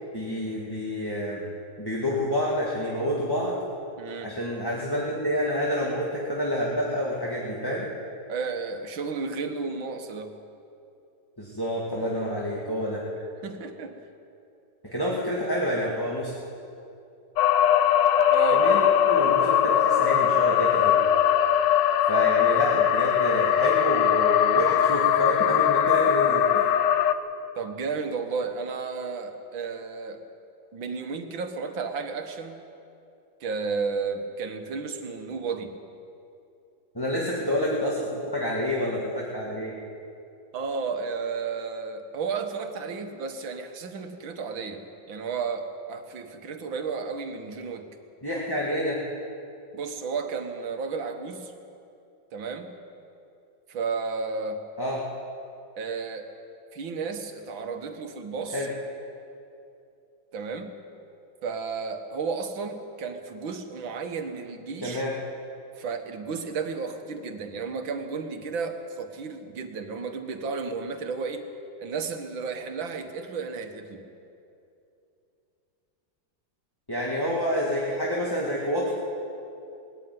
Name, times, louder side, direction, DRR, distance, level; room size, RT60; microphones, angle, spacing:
voice 1, 0.1-1.4 1.8-3.6 4.2-7.9 11.4-13.0 14.8-16.3 18.5-21.0 22.1-26.7 36.9-39.7 48.2-49.0 54.8-55.0 58.5-58.7 64.8-65.1 76.9-78.9, equal, 10° left, -5 dB, 2.1 m, -28 dB
voice 2, 4.0-4.3 8.3-10.3 13.4-13.9 18.3-18.7 27.6-30.2 30.7-32.6 33.4-35.8 40.5-47.9 49.7-51.5 52.3-52.8 53.7-54.6 55.8-56.3 56.7-58.7 60.3-60.7 61.4-65.0 65.8-71.5 71.8-74.0, right 5 dB, 80° right, 6 dB, 2.2 m, -33 dB
sound 1, 17.4-27.1, left 10 dB, 70° left, 1.3 m, -21 dB
20.0 x 14.5 x 9.5 m, 2.7 s
omnidirectional pair, 2.1 m